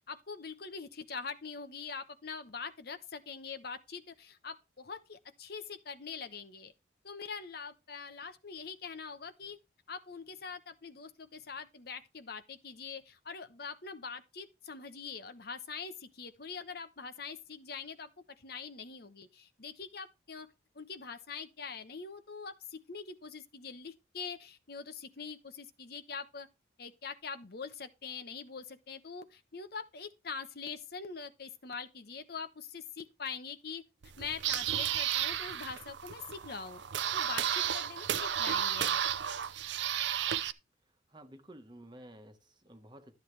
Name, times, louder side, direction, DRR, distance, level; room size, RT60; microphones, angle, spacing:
voice 1, 0.1-6.7 7.0-9.6 9.9-18.1 18.4-26.5 26.8-33.8 34.2-36.8 37.1-39.0, left 5 dB, 55° left, 1.0 m, -43 dB
sound 1, 34.0-40.5, right 9 dB, 70° right, 0.6 m, -33 dB
voice 2, 41.1-43.1, right 1 dB, 25° right, 1.3 m, -52 dB
13.0 x 8.0 x 3.3 m
head